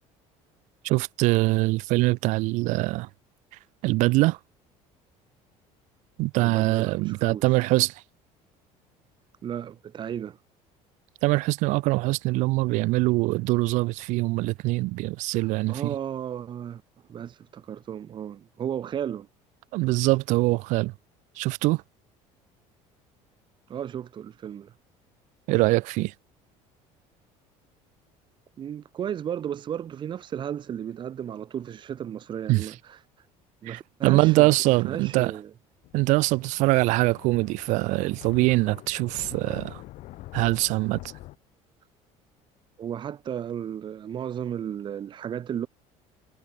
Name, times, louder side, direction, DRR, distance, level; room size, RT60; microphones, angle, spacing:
voice 1, 0.8-3.1 3.8-4.4 6.2-8.0 11.2-15.9 19.7-20.9 21.4-21.8 25.5-26.1 32.5-32.7 33.7-35.3 35.9-39.8 40.3-41.0, right 21 dB, 65° right, 0.5 m, -23 dB
voice 2, 6.4-7.5 9.4-10.4 15.4-16.8 17.1-19.3 23.7-24.7 28.6-33.0 33.6-35.5 42.8-45.7, right 9 dB, 35° right, 2.2 m, -34 dB
Thunder, 35.8-41.3, left 17 dB, 65° left, 6.3 m, -44 dB
cardioid pair, 145°, 13 cm